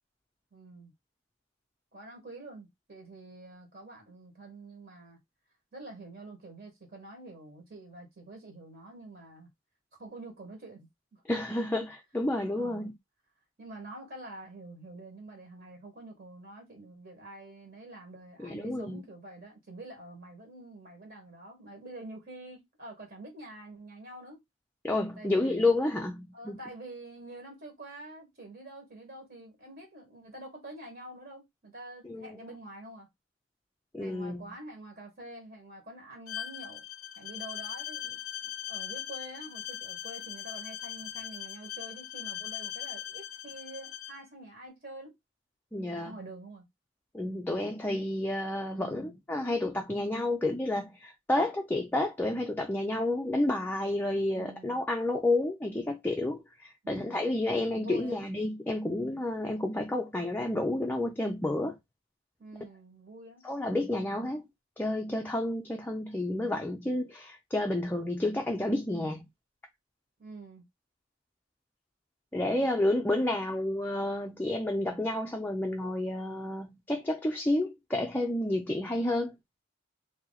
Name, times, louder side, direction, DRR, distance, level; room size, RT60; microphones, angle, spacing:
voice 1, 0.5-0.9 1.9-5.2 5.7-9.5 10.0-11.2 12.6-12.9 13.6-24.4 25.2-25.7 26.3-33.1 34.0-36.8 37.2-45.2 45.9-46.7 48.7-49.1 54.3-54.8 56.8-57.3 57.7-58.2 62.4-63.4 70.2-70.7, right 2 dB, 45° right, 1.4 m, -47 dB
voice 2, 11.3-12.9 18.4-19.0 24.8-26.6 32.1-32.3 33.9-34.4 45.7-46.1 47.1-61.8 63.4-64.4 64.8-69.3 72.3-79.3, left 1 dB, 10° left, 0.4 m, -30 dB
Bowed string instrument, 36.3-44.2, left 12 dB, 75° left, 0.4 m, -40 dB
2.9 x 2.7 x 3.9 m
head